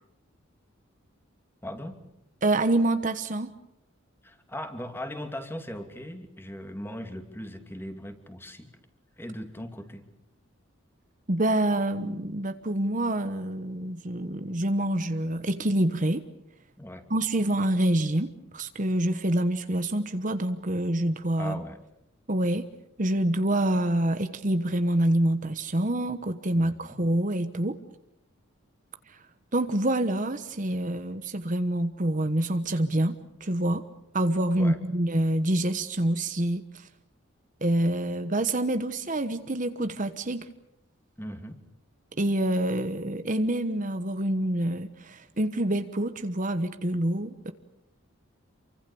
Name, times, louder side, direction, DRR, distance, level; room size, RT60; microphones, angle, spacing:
voice 1, 1.6-2.0 4.2-8.7 9.2-10.0 16.8-17.1 21.4-21.8 26.5-27.0 34.6-34.8 41.2-41.6, equal, 10° left, 6 dB, 2.7 m, -38 dB
voice 2, 2.4-3.5 11.3-16.2 17.1-21.6 22.3-22.7 23.0-27.8 29.1-29.2 29.5-33.8 34.1-36.9 37.6-40.5 42.2-47.5, right 1 dB, 40° right, 9 dB, 1.1 m, -26 dB
28.5 x 24.5 x 7.0 m, 0.81 s
head